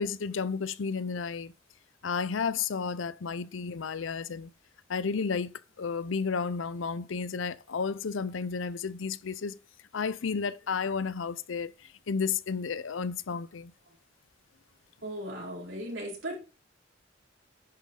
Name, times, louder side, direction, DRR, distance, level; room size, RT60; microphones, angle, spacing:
voice 1, 0.0-1.5 2.0-4.5 4.9-9.6 9.9-11.7 12.1-13.7, left 5 dB, 80° left, 0.6 m, -32 dB
voice 2, 15.0-16.4, right 1 dB, 80° right, 4.0 m, -37 dB
10.5 x 6.4 x 3.8 m
head